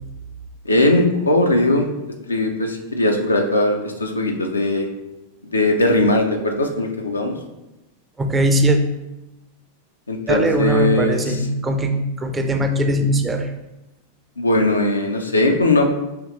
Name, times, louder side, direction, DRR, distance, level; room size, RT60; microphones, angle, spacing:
voice 1, 0.7-1.9 2.3-4.9 5.5-7.4 10.1-11.4 14.4-15.9, left 1 dB, 80° left, 3 dB, 0.5 m, -19 dB
voice 2, 8.2-8.8 10.3-13.5, equal, 15° right, 5 dB, 0.5 m, -20 dB
4.9 x 3.0 x 3.0 m, 0.97 s
figure-of-eight pair, 90°, 0 cm